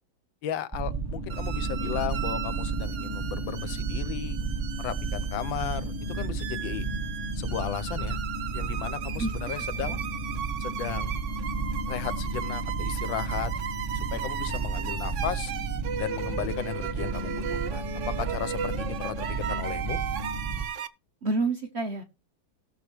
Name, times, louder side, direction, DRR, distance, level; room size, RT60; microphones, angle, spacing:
voice 1, 0.4-4.4 4.8-6.9 7.4-8.2 8.5-10.0 10.6-11.2 11.9-13.5 13.9-15.5 16.0-20.0, left 9 dB, 80° left, 1.5 m, -35 dB
sound 1, 0.7-20.6, right 3 dB, 10° right, 1.1 m, -32 dB
sound 2, 1.3-20.9, right 9 dB, 80° right, 0.6 m, -36 dB
voice 2, 21.2-22.0, right 3 dB, 45° right, 0.9 m, -29 dB
17.5 x 6.7 x 3.0 m
omnidirectional pair, 2.1 m